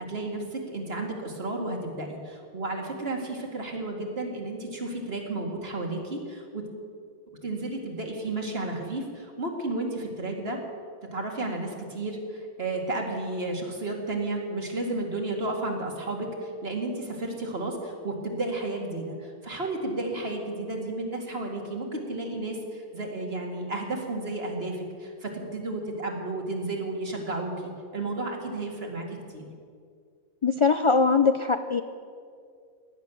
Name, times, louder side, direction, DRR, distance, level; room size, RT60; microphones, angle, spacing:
voice 1, 0.0-6.7 7.4-10.6 11.1-29.5, right 2 dB, 65° right, 1 dB, 2.5 m, -32 dB
voice 2, 30.4-31.8, left 4 dB, 45° left, 8 dB, 0.4 m, -21 dB
17.0 x 10.5 x 6.9 m, 2.2 s
omnidirectional pair, 1.1 m